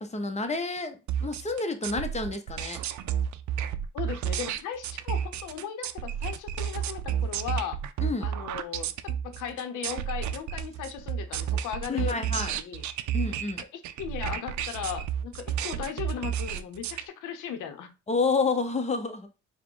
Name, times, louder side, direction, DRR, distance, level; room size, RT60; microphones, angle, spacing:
voice 1, 0.0-2.8 8.0-8.3 11.9-12.6 13.1-13.6 18.1-19.3, left 4 dB, 20° left, 0.7 m, -29 dB
sound 1, 1.1-17.0, right 9 dB, 70° right, 0.5 m, -31 dB
voice 2, 3.9-7.8 8.2-12.2 12.5-12.8 13.6-17.9, left 8 dB, 80° left, 0.8 m, -37 dB
4.7 x 2.2 x 3.8 m
cardioid pair, 90°, 30 cm